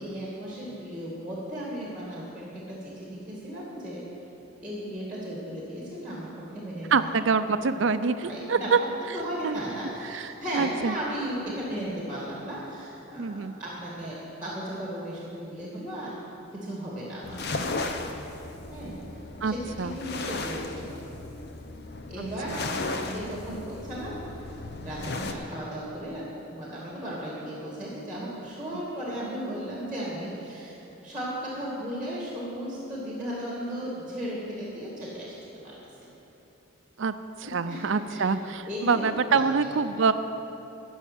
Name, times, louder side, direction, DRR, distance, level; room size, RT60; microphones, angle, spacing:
voice 1, 0.0-4.0 4.6-6.3 6.5-7.4 7.6-7.7 8.2-8.7 9.0-16.1 16.6-17.4 18.7-21.0 22.1-24.2 24.8-26.2 26.5-35.7 37.4-38.2 38.7-39.7 40.0-40.1, equal, 5° right, -5 dB, 2.2 m, -36 dB
voice 2, 6.9-8.8 9.4-9.6 10.1-10.2 10.5-10.9 13.2-13.5 19.4-19.5 19.8-19.9 22.2-22.6 37.0-37.1 37.4-40.1, right 5 dB, 60° right, 11 dB, 0.5 m, -25 dB
sound 1, 17.2-25.3, left 3 dB, 50° left, 0.8 m, -35 dB
13.5 x 6.4 x 9.2 m, 3.0 s
head